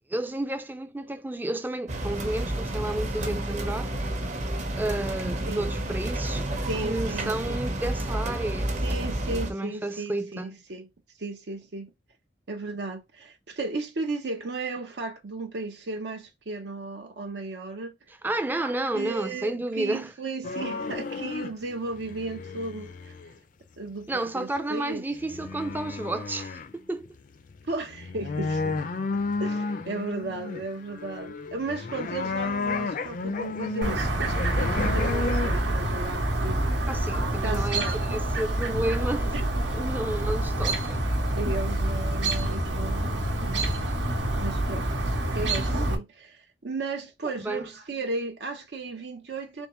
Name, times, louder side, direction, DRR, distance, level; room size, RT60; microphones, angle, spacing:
voice 1, 0.1-3.9 4.7-6.5 6.8-9.0 9.3-10.5 18.2-20.1 24.1-27.1 36.9-41.0 47.4-47.7, right 1 dB, 10° right, 0.4 m, -31 dB
sound 1, 1.9-9.5, right 1 dB, 40° right, 0.9 m, -30 dB
voice 2, 6.6-7.6 8.8-10.9 11.2-11.9 12.5-17.9 18.6-23.1 23.8-25.0 27.6-28.8 29.4-36.6 36.9-38.0 39.3-39.4 41.4-43.7 44.4-49.7, right 3 dB, 65° right, 0.7 m, -35 dB
sound 2, 20.4-21.5 21.8-23.3 24.6-24.7 25.2-26.7 27.1-27.2 27.4-35.6, left 3 dB, 45° left, 0.4 m, -32 dB
Chirp tweet, 33.8-46.0, right 1 dB, 85° right, 1.1 m, -27 dB
3.6 x 3.5 x 3.0 m
head